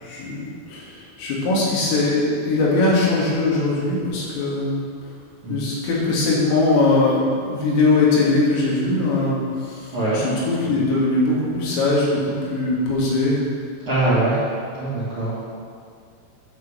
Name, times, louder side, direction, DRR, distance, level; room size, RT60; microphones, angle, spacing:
voice 1, 0.0-4.8 5.5-9.4 9.7-9.8 10.1-13.4, left 2 dB, 85° left, -6 dB, 5.1 m, -21 dB
voice 2, 9.9-10.2 13.8-14.4 14.8-15.4, right 2 dB, 35° right, -11 dB, 2.4 m, -22 dB
10.5 x 6.5 x 7.3 m, 2.2 s
omnidirectional pair, 5.7 m